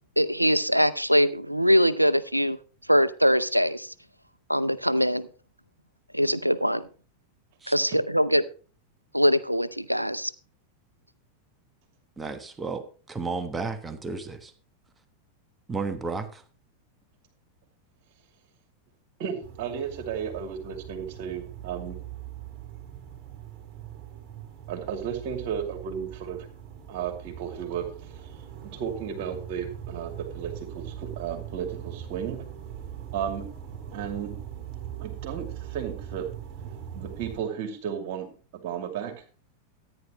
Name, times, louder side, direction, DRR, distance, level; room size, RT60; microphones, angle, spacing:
voice 1, 0.2-2.6 2.9-3.9 4.5-5.3 6.1-6.9 7.7-8.4 9.1-10.3, equal, 90° right, 17 dB, 0.5 m, -22 dB
voice 2, 12.2-14.5 15.7-16.4, right 4 dB, 15° right, 9 dB, 1.2 m, -33 dB
voice 3, 19.2-22.0 24.7-26.5 26.9-28.3 28.6-32.4 33.1-33.5 33.9-34.3 35.0-36.3 36.6-36.7 36.9-38.3 38.6-39.1, right 8 dB, 45° right, 5 dB, 2.5 m, -34 dB
sound 1, 19.4-37.4, right 10 dB, 30° right, 3.6 m, -41 dB
14.0 x 9.6 x 3.1 m, 0.37 s
figure-of-eight pair, 90°, 0 cm